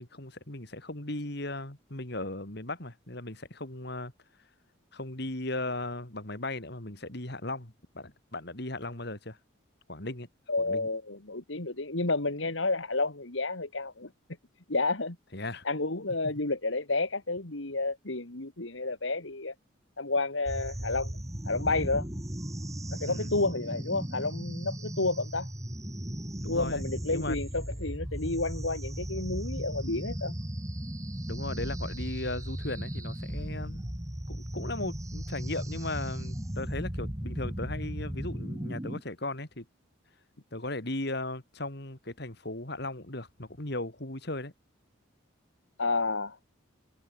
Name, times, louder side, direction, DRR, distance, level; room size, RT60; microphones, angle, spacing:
voice 1, 0.0-4.1 4.9-9.4 9.9-10.3 10.6-10.9 15.3-15.7 23.1-23.3 26.4-26.8 27.1-27.4 31.2-33.9 34.3-39.7 40.5-44.5, left 2 dB, 55° left, 3.5 m, -37 dB
voice 2, 10.5-14.1 14.7-15.2 15.6-19.5 20.0-21.1 21.5-22.1 22.9-25.5 26.5-30.3 45.8-46.4, left 3 dB, 75° left, 2.5 m, -30 dB
sound 1, 20.5-39.0, equal, 15° right, 2.0 m, -36 dB
head